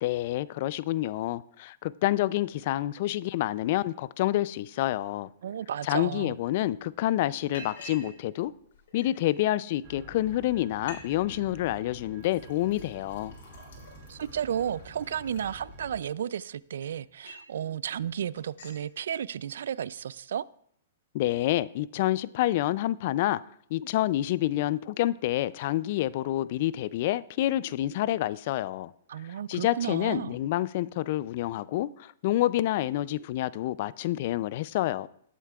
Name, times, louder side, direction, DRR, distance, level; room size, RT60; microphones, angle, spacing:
voice 1, 0.0-5.3 5.8-8.5 8.9-13.3 21.1-23.4 23.7-28.9 29.5-35.1, left 14 dB, 45° left, 0.3 m, -28 dB
voice 2, 5.4-6.4 14.1-20.4 29.1-30.4, right 9 dB, 75° right, 0.3 m, -33 dB
Liquid, 6.4-6.5 6.8-7.1 7.5-8.1 8.4-9.3 10.0-10.1 10.4-10.5 10.7-11.0 11.3-11.7 12.2-16.0 16.5-17.5 17.9-18.1 18.4-18.8, left 2 dB, 65° left, 3.9 m, -48 dB
sound 1, 9.8-16.0, right 1 dB, 20° right, 2.6 m, -49 dB
18.5 x 8.2 x 2.3 m
hypercardioid pair, 155°, 0 cm